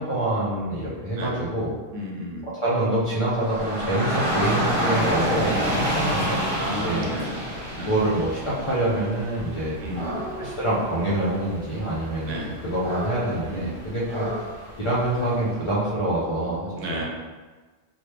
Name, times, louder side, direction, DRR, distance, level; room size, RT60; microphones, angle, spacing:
voice 1, 0.0-1.7 2.4-6.4 6.7-7.1 7.8-9.8 10.4-12.4 12.6-14.3 14.8-16.8, right 1 dB, 40° left, -8 dB, 0.5 m, -26 dB
voice 2, 1.9-2.5 5.5-5.7 6.5-7.5 7.8-7.9 9.8-10.3 12.2-12.5 13.5-13.7 16.8-17.0, equal, 90° right, -1 dB, 1.0 m, -32 dB
Dog / Rain, 3.3-15.5, equal, 45° right, 1.2 m, -29 dB
3.1 x 2.2 x 3.3 m, 1.3 s
omnidirectional pair, 1.3 m